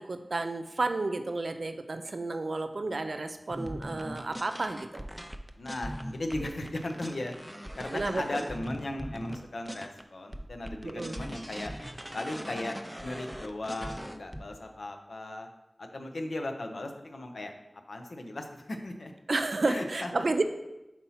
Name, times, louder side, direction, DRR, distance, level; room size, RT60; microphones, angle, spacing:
voice 1, 0.0-5.1 7.9-8.4 10.8-11.2 19.3-20.4, right 3 dB, 75° right, 7 dB, 0.5 m, -31 dB
sound 1, 3.5-10.0 10.3-14.4, equal, 5° right, 0.4 m, -40 dB
voice 2, 5.6-7.3 7.8-11.7 12.1-15.5 15.8-17.5 17.9-19.1 19.7-20.1, left 1 dB, 90° left, 4 dB, 0.6 m, -37 dB
4.4 x 4.1 x 5.6 m, 0.96 s
wide cardioid pair, 50°, 0 cm